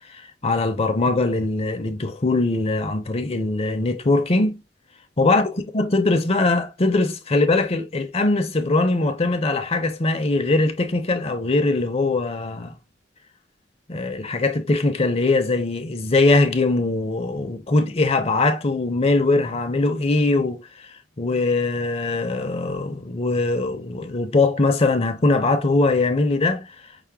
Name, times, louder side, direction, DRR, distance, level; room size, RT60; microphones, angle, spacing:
voice 1, 0.1-4.6 5.2-12.8 13.9-26.7, left 2 dB, 35° left, 0.6 m, -21 dB
5.6 x 2.1 x 3.5 m
head